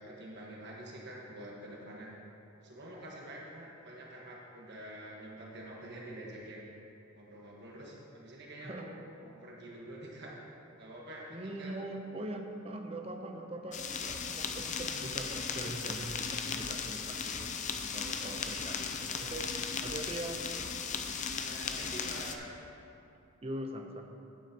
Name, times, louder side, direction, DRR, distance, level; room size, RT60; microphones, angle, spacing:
voice 1, 0.0-2.1 2.5-6.7 7.1-9.0 9.2-10.3 10.8-11.8 20.6-20.9 21.3-22.5, right 1 dB, 55° right, -3 dB, 1.4 m, -47 dB
voice 2, 8.6-8.9 11.3-17.5 17.9-19.5 19.8-20.4 23.4-24.0, right 1 dB, 30° right, 4 dB, 0.7 m, -42 dB
sound 1, 13.7-22.4, left 6 dB, 35° left, 0.5 m, -37 dB
11.5 x 9.5 x 2.9 m, 2.7 s
head